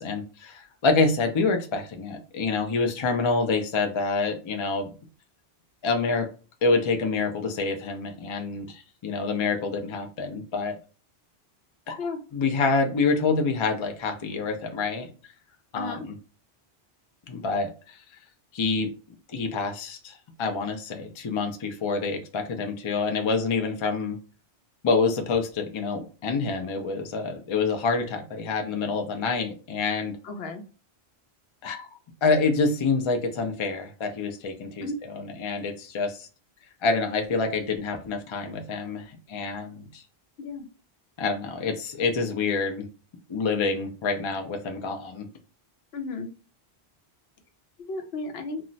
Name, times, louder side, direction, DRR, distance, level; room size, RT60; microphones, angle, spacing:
voice 1, 0.0-4.9 5.8-6.3 6.6-10.8 11.9-12.0 12.3-15.1 15.7-16.1 17.3-18.0 18.5-18.9 19.3-24.2 24.8-30.2 31.6-31.9 32.2-36.3 36.8-40.0 41.2-42.9 43.3-45.3, left 4 dB, 50° left, 5 dB, 0.3 m, -27 dB
voice 2, 15.7-16.0 30.2-30.6 34.8-34.9 40.4-40.7 45.9-46.3 47.8-48.6, left 3 dB, 70° left, 5 dB, 0.8 m, -33 dB
2.3 x 2.0 x 3.8 m, 0.35 s
omnidirectional pair, 1.1 m